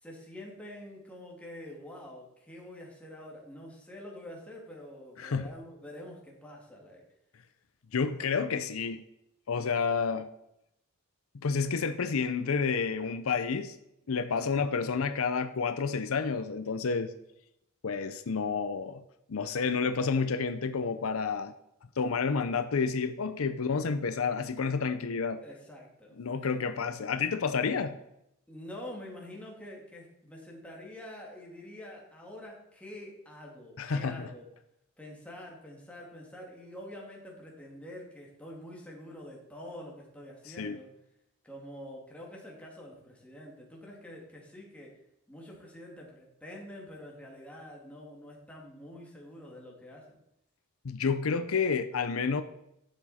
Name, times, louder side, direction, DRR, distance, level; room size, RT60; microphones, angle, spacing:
voice 1, 0.0-7.0 25.4-26.9 28.5-34.4 35.0-40.9 41.4-44.9 45.3-50.2, left 1 dB, 5° left, -2 dB, 2.3 m, -46 dB
voice 2, 5.2-5.5 7.9-9.0 9.5-10.3 11.4-13.8 14.1-17.1 17.8-19.0 19.3-21.5 22.0-25.4 26.2-28.0 33.8-34.3 40.5-40.8 50.8-52.4, left 5 dB, 80° left, 11 dB, 0.6 m, -30 dB
11.5 x 7.0 x 4.2 m, 0.82 s
head